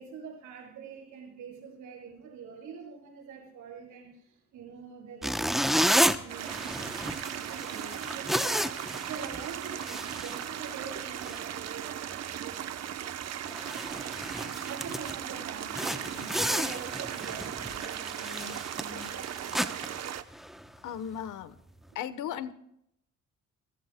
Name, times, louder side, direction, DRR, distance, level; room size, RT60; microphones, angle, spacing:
voice 1, 0.0-8.7 9.1-13.2 14.6-20.0, right 5 dB, 85° right, -2 dB, 7.3 m, -45 dB
sound 1, 5.2-10.9 11.2-11.4 11.9-12.1 12.5-12.6 13.1-13.2 13.4-15.2 15.7-20.8, equal, ahead, 0.8 m, -32 dB
sound 2, 6.3-20.2, right 10 dB, 60° right, 0.9 m, -37 dB
voice 2, 20.8-21.6 21.9-22.5, left 9 dB, 80° left, 13 dB, 1.1 m, -36 dB
28.5 x 14.5 x 2.2 m, 0.76 s
cardioid pair, 90°, 30 cm